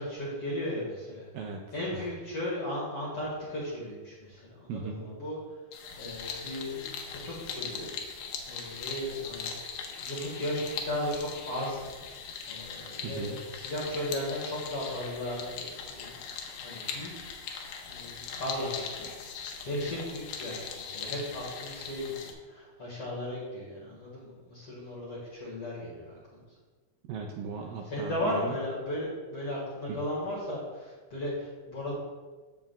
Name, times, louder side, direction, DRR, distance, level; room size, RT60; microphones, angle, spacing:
voice 1, 0.0-1.2 1.7-5.4 6.0-7.9 8.5-9.5 10.0-11.8 12.4-16.2 16.5-17.3 17.9-19.1 19.6-26.4 27.9-31.9, left 1 dB, 50° left, -7 dB, 1.9 m, -36 dB
voice 2, 1.3-2.1 4.7-5.1 13.0-13.4 27.1-28.6 29.9-30.0, right 4 dB, 85° right, 2 dB, 2.1 m, -38 dB
sound 1, 5.7-22.3, left 6 dB, 75° left, 2.5 m, -40 dB
14.5 x 4.8 x 2.3 m, 1.3 s
omnidirectional pair, 4.6 m